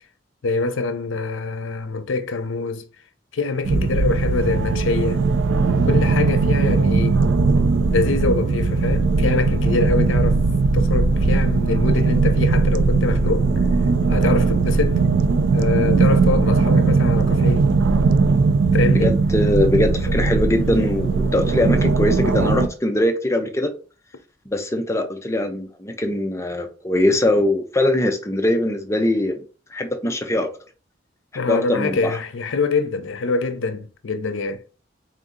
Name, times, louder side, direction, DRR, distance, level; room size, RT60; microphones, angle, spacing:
voice 1, 0.4-2.8 3.3-5.3 5.8-7.2 7.9-10.4 10.7-13.6 14.1-15.0 15.5-17.7 18.7-19.1 20.1-20.3 31.3-34.6, left 3 dB, 80° left, 0.5 m, -24 dB
sound 1, 3.6-22.7, right 4 dB, 75° right, 0.4 m, -19 dB
sound 2, 5.7-14.8, equal, 60° right, 1.6 m, -37 dB
voice 2, 19.0-23.7 24.5-29.4 29.7-30.5 31.5-32.2, left 1 dB, 15° left, 0.5 m, -21 dB
3.8 x 2.7 x 3.6 m
head